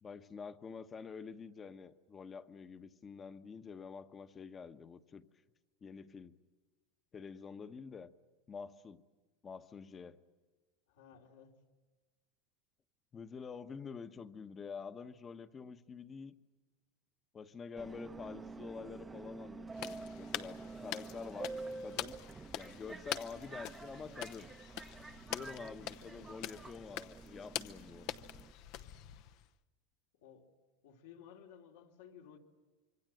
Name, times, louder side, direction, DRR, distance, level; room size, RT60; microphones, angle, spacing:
voice 1, 0.0-5.3 5.8-6.4 7.1-8.1 8.5-9.0 9.4-10.2 13.1-16.3 17.3-21.5 21.8-22.2 22.5-24.5 25.3-28.1, left 5 dB, 25° left, 1.1 m, -47 dB
voice 2, 10.9-11.6 30.1-30.5 30.8-32.4, left 8 dB, 85° left, 3.4 m, -56 dB
Subway metro underground, 17.8-28.5, right 3 dB, 15° right, 0.8 m, -48 dB
sound 1, 19.7-29.5, left 13 dB, 60° left, 0.8 m, -45 dB
25.5 x 24.0 x 7.8 m
supercardioid pair, 120°, 0 cm